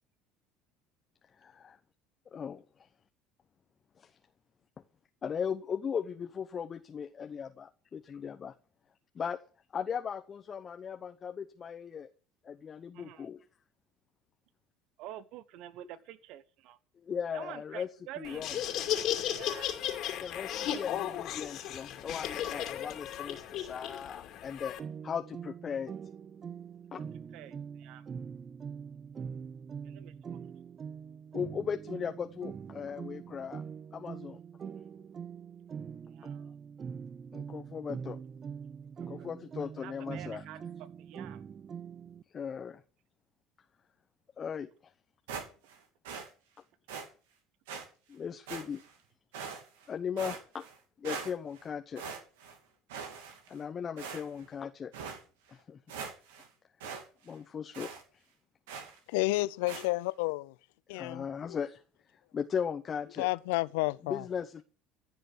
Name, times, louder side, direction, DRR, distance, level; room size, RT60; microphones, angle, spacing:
voice 1, 1.4-1.8 2.3-2.6 4.0-4.1 5.2-8.5 9.1-9.4 9.7-12.1 12.4-13.4 17.0-17.9 18.2-18.6 20.2-24.8 25.0-25.9 26.9-27.0 31.3-33.6 33.9-34.4 37.3-38.2 39.1-40.4 42.3-42.8 44.4-44.7 48.1-48.8 49.9-50.6 51.0-52.0 53.5-54.9 55.5-55.8 57.2-57.9 60.9-61.8 62.3-63.3 64.0-64.6, left 7 dB, 35° left, 0.9 m, -37 dB
voice 2, 12.9-13.2 15.0-16.8 17.3-18.4 18.9-19.7 22.4-22.9 27.3-28.0 36.1-36.4 39.2-39.3 39.8-40.6 41.1-41.4, right 12 dB, 65° right, 1.2 m, -47 dB
Laughter, 18.2-24.8, left 11 dB, 60° left, 2.4 m, -35 dB
sound 1, 24.8-42.2, right 7 dB, 35° right, 0.6 m, -43 dB
sound 2, 45.3-45.8 46.0-46.3 46.9-47.1 47.7-47.8 48.5-48.9 49.3-49.9 50.2-50.8 51.0-51.6 52.0-52.6 52.9-53.6 54.0-54.5 54.9-55.2 55.6-55.7 55.9-56.5 56.8-57.0 57.3-57.4 57.7-58.0 58.7-59.0 59.7-59.9, right 6 dB, 85° right, 2.9 m, -42 dB
voice 3, 59.1-60.5 60.9-61.6 63.2-64.2, left 21 dB, 80° left, 0.6 m, -31 dB
15.0 x 6.8 x 8.1 m
hypercardioid pair, 80°, 0 cm